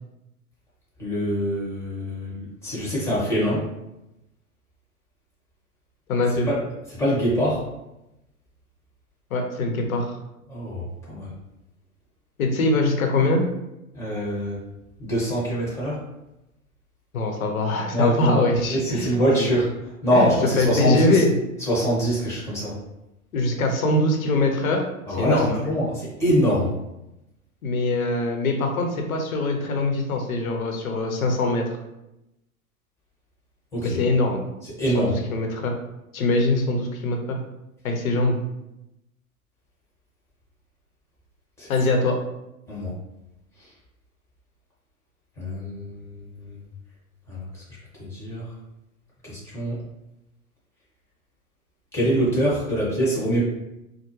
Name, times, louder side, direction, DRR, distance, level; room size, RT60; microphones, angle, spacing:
voice 1, 1.0-3.6 6.5-6.6 6.9-7.6 10.5-11.3 13.9-14.6 15.0-16.0 17.9-19.7 20.0-21.2 21.6-22.8 25.1-26.7 33.7-34.0 34.6-35.2 41.6-41.7 42.7-42.9 43.6-43.7 45.4-46.6 47.3-47.6 48.0-48.5 49.2-49.8 51.9-53.4, equal, 5° left, -6 dB, 1.4 m, -24 dB
voice 2, 6.1-6.5 9.3-10.1 12.4-13.4 17.1-19.1 19.4-19.5 20.1-20.3 20.6-21.3 23.3-25.6 27.6-31.6 33.8-34.5 34.9-35.7 36.1-37.4 37.8-38.4 41.7-42.2, left 2 dB, 70° left, 3 dB, 0.8 m, -23 dB
4.5 x 2.1 x 3.0 m, 0.91 s
hypercardioid pair, 110°, 44 cm